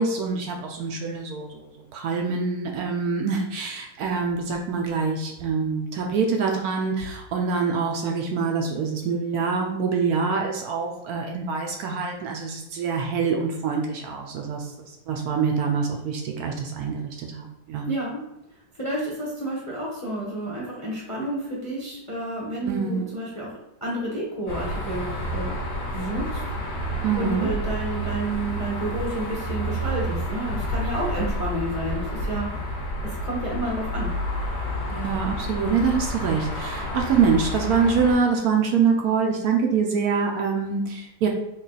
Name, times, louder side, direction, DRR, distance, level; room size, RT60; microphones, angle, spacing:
voice 1, 0.0-1.6 1.9-14.7 15.1-17.0 17.3-17.9 22.6-23.1 27.0-27.5 34.9-41.3, right 5 dB, 70° right, 2 dB, 0.9 m, -25 dB
voice 2, 17.9-18.2 18.8-23.5 23.8-25.6 25.9-26.4 27.2-34.1, right 1 dB, 15° left, -4 dB, 0.7 m, -30 dB
sound 1, 24.5-38.2, equal, 40° left, 1.3 m, -30 dB
3.8 x 2.4 x 3.9 m, 0.88 s
omnidirectional pair, 2.0 m